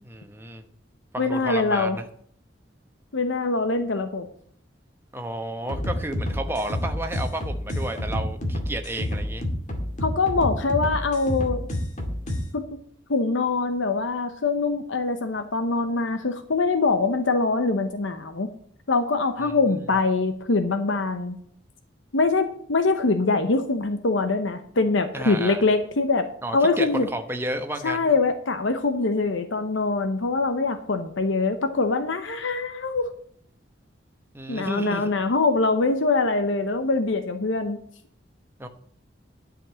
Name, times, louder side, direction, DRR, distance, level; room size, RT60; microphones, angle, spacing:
voice 1, 0.0-0.6 1.1-2.0 5.1-9.4 19.4-19.9 25.1-25.6 26.4-28.1 34.3-35.1 38.6-38.7, right 1 dB, 10° right, 5 dB, 1.0 m, -32 dB
voice 2, 1.2-2.0 3.1-4.3 10.0-11.6 12.5-12.7 13.1-18.5 18.9-21.4 22.1-26.2 26.5-27.1 27.8-33.1 34.5-37.8, left 3 dB, 90° left, 8 dB, 0.9 m, -23 dB
sound 1, 5.7-12.4, left 1 dB, 40° left, 2.1 m, -29 dB
11.0 x 5.3 x 7.4 m, 0.63 s
head